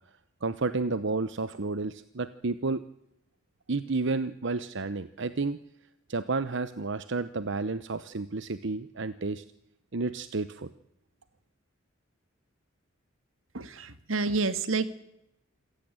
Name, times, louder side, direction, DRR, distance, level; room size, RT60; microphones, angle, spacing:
voice 1, 0.4-2.8 3.7-5.6 6.1-9.4 9.9-10.7, right 3 dB, 65° right, 13 dB, 0.9 m, -31 dB
voice 2, 13.5-14.9, right 3 dB, 80° right, 12 dB, 1.8 m, -29 dB
27.0 x 15.5 x 8.9 m, 0.85 s
head